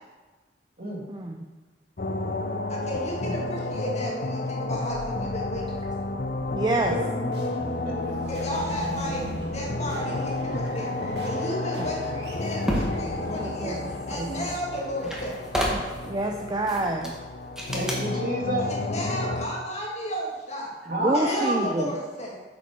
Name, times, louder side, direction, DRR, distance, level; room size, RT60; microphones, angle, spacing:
voice 1, 1.1-1.5 5.7-5.8 6.5-6.9 11.8-11.9 13.2-14.5 15.7-17.1 20.9-21.9, right 2 dB, 25° right, 2 dB, 0.5 m, -28 dB
sound 1, 2.0-19.5, left 2 dB, 55° left, 0.6 m, -31 dB
voice 2, 2.7-5.7 8.3-11.0 11.2-13.8 14.1-15.4 18.6-20.7 21.0-22.4, equal, 40° left, -2 dB, 2.0 m, -33 dB
sound 2, 5.6-15.7, equal, 75° right, 2.0 m, -41 dB
voice 3, 7.8-8.4 11.6-11.8 17.7-18.7 20.9-21.8, right 1 dB, 55° right, -2 dB, 2.1 m, -30 dB
sound 3, 12.3-13.0 14.4-14.5 14.8-16.1 16.7-17.2 17.6-18.0, equal, 5° right, 1.5 m, -30 dB
8.7 x 7.3 x 4.5 m, 1.3 s
head